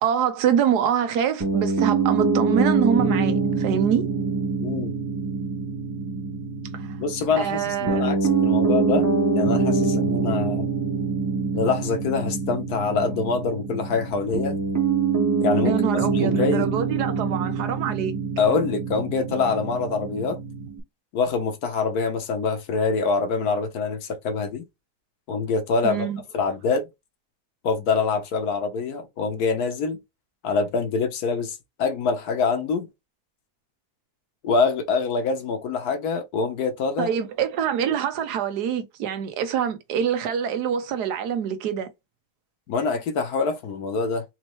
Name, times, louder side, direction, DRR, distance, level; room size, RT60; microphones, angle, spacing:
voice 1, 0.0-4.0 6.7-7.0 7.4-8.1 15.6-18.1 25.8-26.2 37.0-41.9, right 8 dB, 85° right, 1.3 m, -25 dB
Piano, 1.4-20.8, right 4 dB, 15° right, 0.7 m, -25 dB
voice 2, 4.6-4.9 7.0-10.7 11.5-14.6 15.4-15.8 16.1-16.7 18.4-20.4 21.1-24.6 25.3-26.1 26.3-26.9 27.6-30.0 30.4-32.9 34.4-37.1 42.7-44.2, left 4 dB, 75° left, 1.4 m, -25 dB
4.3 x 2.9 x 3.0 m
omnidirectional pair, 1.7 m